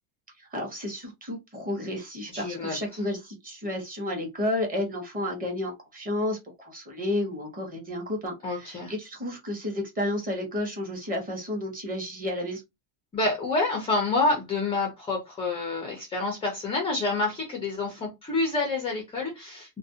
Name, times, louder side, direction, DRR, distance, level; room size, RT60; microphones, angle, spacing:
voice 1, 0.4-12.6, left 1 dB, 20° right, 0.9 m, -31 dB
voice 2, 2.3-2.8 8.4-8.9 13.1-19.8, left 3 dB, 15° left, 0.3 m, -28 dB
2.4 x 2.1 x 2.6 m
cardioid pair, 150°, 46 cm